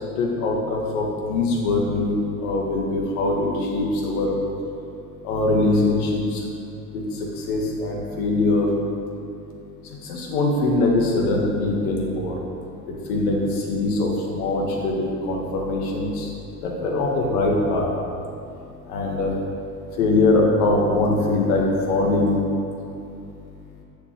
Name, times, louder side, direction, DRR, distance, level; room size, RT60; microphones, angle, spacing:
voice 1, 0.2-4.4 5.2-6.4 6.9-7.0 7.5-8.7 10.1-12.3 13.1-13.4 13.7-16.2 16.6-17.9 18.9-19.3 20.0-22.4, left 2 dB, 65° left, -1 dB, 2.0 m, -22 dB
8.0 x 7.0 x 7.9 m, 2.6 s
hypercardioid pair, 80°, 47 cm